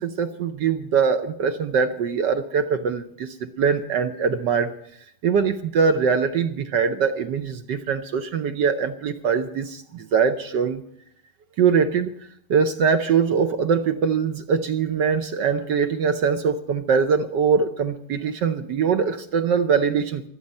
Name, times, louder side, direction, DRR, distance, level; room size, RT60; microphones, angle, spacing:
voice 1, 0.0-4.7 5.2-10.8 11.6-12.1 12.5-20.2, right 6 dB, 65° right, 8 dB, 1.2 m, -22 dB
24.0 x 8.3 x 5.4 m, 0.67 s
omnidirectional pair, 2.4 m